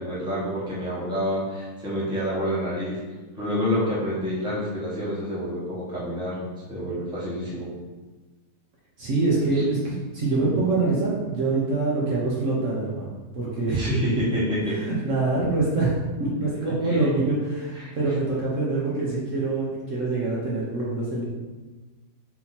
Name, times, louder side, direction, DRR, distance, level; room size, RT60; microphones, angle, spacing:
voice 1, 0.0-3.0 3.4-7.7 9.5-9.6 13.7-14.7 16.8-17.0 17.7-17.9, equal, 5° right, -8 dB, 1.0 m, -28 dB
voice 2, 9.0-13.1 13.3-13.8 14.6-21.2, right 3 dB, 55° right, -6 dB, 1.1 m, -25 dB
4.3 x 2.7 x 4.1 m, 1.3 s
omnidirectional pair, 1.7 m